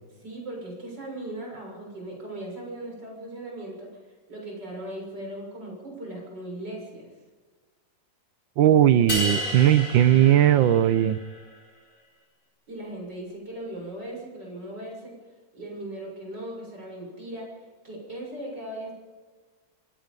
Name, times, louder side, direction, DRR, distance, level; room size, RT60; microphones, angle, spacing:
voice 1, 0.2-4.0 4.3-7.1 12.7-15.1 15.5-17.6 17.8-18.9, right 1 dB, 65° right, -1 dB, 7.8 m, -38 dB
voice 2, 8.6-11.2, right 11 dB, 90° right, 15 dB, 1.6 m, -18 dB
sound 1, 9.1-11.4, equal, 45° left, 5.4 m, -31 dB
26.5 x 18.0 x 5.4 m, 1.4 s
omnidirectional pair, 2.0 m